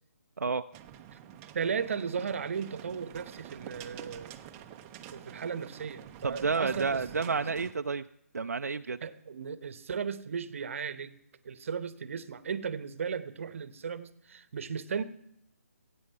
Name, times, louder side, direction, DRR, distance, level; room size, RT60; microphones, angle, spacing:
sound 1, 0.7-7.7, right 10 dB, 20° right, 0.6 m, -48 dB
voice 1, 1.5-4.4 5.1-7.0 7.3-7.4 9.0-11.2 11.4-15.0, right 6 dB, 55° right, 15 dB, 0.9 m, -36 dB
voice 2, 6.2-8.0 8.3-9.0, right 4 dB, 85° right, 8 dB, 0.4 m, -30 dB
15.0 x 8.4 x 5.6 m, 0.78 s
figure-of-eight pair, 150°, 8 cm